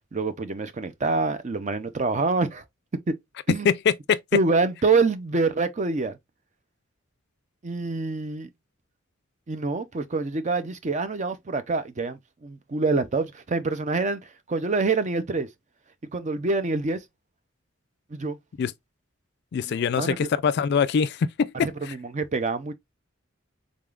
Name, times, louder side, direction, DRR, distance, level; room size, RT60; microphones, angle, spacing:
voice 1, 0.1-2.6 3.1-3.2 3.5-3.7 4.3-6.2 7.6-8.5 9.5-15.5 16.1-17.0 18.1-18.4 19.7-20.3 21.6-22.7, right 3 dB, 35° right, 0.5 m, -26 dB
voice 2, 3.6-4.2 18.6-18.7 19.5-21.5 21.9-22.0, left 6 dB, 55° left, 0.3 m, -23 dB
3.8 x 3.5 x 2.4 m
head